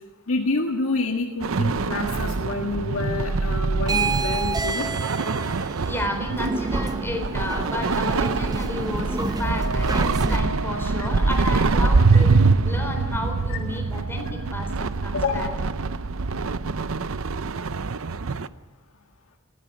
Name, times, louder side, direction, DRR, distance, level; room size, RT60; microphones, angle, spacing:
voice 1, 0.3-4.9 11.0-11.1 13.5-13.6 15.1-15.6, left 3 dB, 80° left, 2 dB, 1.7 m, -27 dB
sound 1, 1.4-18.5, right 4 dB, 80° right, 0.7 m, -24 dB
sound 2, 3.8-10.4, right 3 dB, 20° right, 0.7 m, -30 dB
voice 2, 5.6-12.3 12.6-15.5, left 1 dB, 10° left, 3 dB, 3.9 m, -32 dB
Wind instrument woodwind instrument, 9.3-14.9, right 1 dB, 60° right, 5.0 m, -38 dB
19.0 x 15.5 x 10.0 m, 1.2 s
head